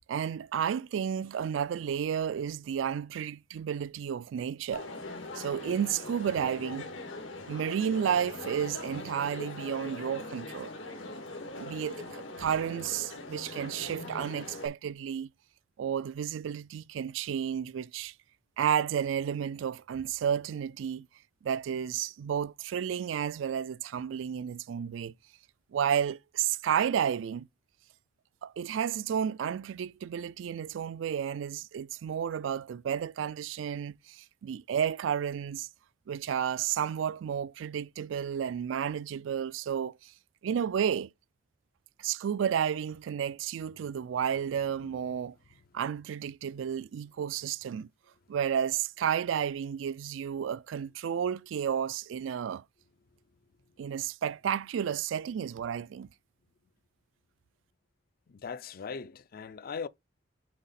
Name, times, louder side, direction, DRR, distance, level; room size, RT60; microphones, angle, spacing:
voice 1, 0.1-4.9 5.3-6.9 7.5-10.7 11.6-15.3 15.8-18.1 18.6-21.1 21.4-25.1 25.7-27.5 28.4-35.7 36.1-40.1 40.4-41.1 42.0-45.3 45.7-47.9 48.3-52.6 53.8-56.1, right 8 dB, 80° right, 0.3 m, -32 dB
Crowd, 4.7-14.7, left 2 dB, 85° left, 2.2 m, -41 dB
voice 2, 44.6-45.0 58.3-59.9, left 5 dB, 50° left, 0.5 m, -40 dB
7.5 x 4.0 x 4.1 m
head